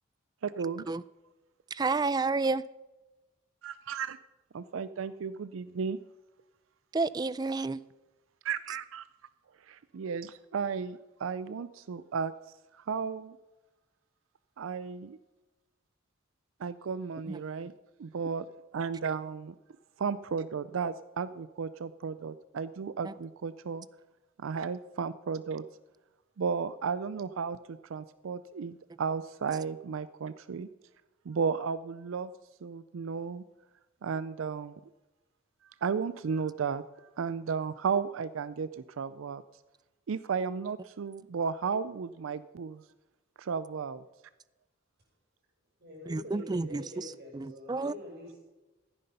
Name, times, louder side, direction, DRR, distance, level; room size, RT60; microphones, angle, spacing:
voice 1, 0.4-0.8 3.6-4.2 4.5-6.0 8.4-9.1 9.7-12.3 12.8-13.4 14.6-15.2 16.6-17.7 18.0-18.5 18.7-19.5 20.0-23.9 24.4-25.6 26.4-30.7 31.3-32.3 32.6-33.4 34.0-34.8 35.8-36.8 37.2-39.4 40.1-42.8 43.4-44.0, right 6 dB, 85° right, 15 dB, 0.4 m, -34 dB
voice 2, 1.7-2.6 6.9-7.8 17.3-17.4 23.0-23.1 46.1-47.0 47.3-47.9, right 3 dB, 20° right, 19 dB, 0.3 m, -30 dB
voice 3, 45.8-48.4, left 1 dB, 55° right, -2 dB, 6.1 m, -45 dB
15.5 x 9.7 x 5.5 m, 1.1 s
head